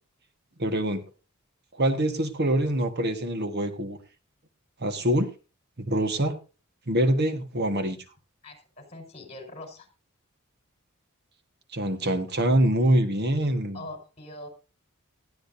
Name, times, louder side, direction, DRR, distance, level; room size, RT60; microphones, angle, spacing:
voice 1, 0.6-1.0 1.7-4.0 4.8-5.3 5.8-6.4 6.9-8.0 11.7-13.8, right 1 dB, 50° right, 7 dB, 1.5 m, -24 dB
voice 2, 8.4-9.9 13.7-14.5, left 1 dB, 30° left, 4 dB, 5.4 m, -43 dB
19.0 x 14.0 x 2.7 m, 0.33 s
head